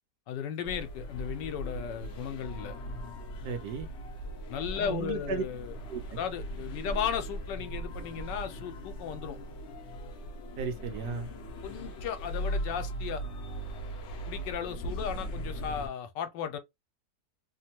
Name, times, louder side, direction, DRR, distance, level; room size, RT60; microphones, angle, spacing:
voice 1, 0.3-2.7 4.5-5.7 6.2-9.4 11.6-13.2 14.3-16.6, left 8 dB, 80° left, 1.3 m, -35 dB
sound 1, 0.6-15.9, right 1 dB, 65° left, 0.7 m, -39 dB
voice 2, 3.4-3.9 4.8-5.4 5.9-6.2 10.6-11.3, right 6 dB, 70° right, 1.2 m, -35 dB
3.2 x 2.2 x 2.8 m
omnidirectional pair, 1.9 m